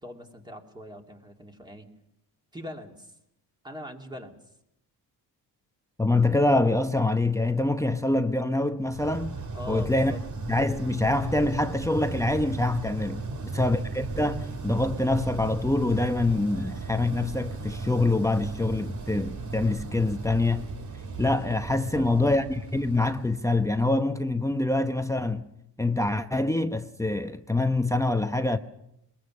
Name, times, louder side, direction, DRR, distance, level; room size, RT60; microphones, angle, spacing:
voice 1, 0.0-1.9 2.5-3.2 3.6-4.4 9.5-10.2 13.2-13.7 21.9-22.5, left 1 dB, 10° right, 2.7 m, -42 dB
voice 2, 6.0-9.4 9.7-10.2 10.5-13.2 13.5-20.7 21.2-25.4 25.8-28.6, left 2 dB, 5° left, 0.9 m, -25 dB
sound 1, 8.9-23.9, right 3 dB, 45° right, 2.3 m, -36 dB
22.0 x 21.5 x 6.4 m
cardioid pair, 110°, 42 cm